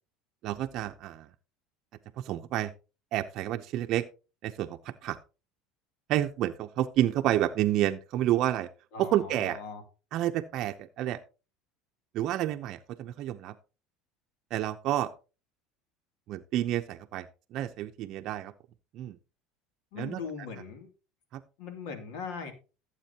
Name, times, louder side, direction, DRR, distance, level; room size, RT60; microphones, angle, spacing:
voice 1, 0.4-1.3 2.2-2.7 3.1-4.0 4.4-5.2 6.1-8.7 9.0-9.6 10.1-11.2 12.1-13.5 14.5-15.1 16.3-18.5 18.9-19.2 20.0-20.2 21.3-21.4, right 13 dB, 50° right, 7 dB, 0.6 m, -29 dB
voice 2, 8.9-9.8 19.9-20.9 21.6-22.5, left 5 dB, 75° left, 6 dB, 2.6 m, -39 dB
15.5 x 8.1 x 2.8 m, 0.32 s
supercardioid pair, 130°, 0 cm